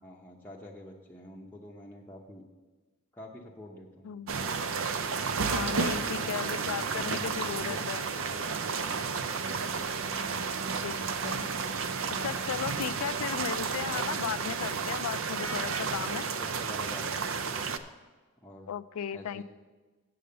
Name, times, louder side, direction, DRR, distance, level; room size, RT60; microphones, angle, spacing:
voice 1, 0.0-2.4 3.1-4.1 5.3-9.4 16.2-17.6 18.4-18.7 19.1-19.4, left 1 dB, 10° left, -3 dB, 0.7 m, -47 dB
sound 1, 4.3-17.8, right 5 dB, 60° right, 0.5 m, -32 dB
voice 2, 5.5-8.1 10.8-10.9 11.2-11.5 12.2-16.3 18.7-19.4, left 8 dB, 80° left, 17 dB, 0.3 m, -36 dB
7.6 x 6.8 x 6.6 m, 1.3 s
head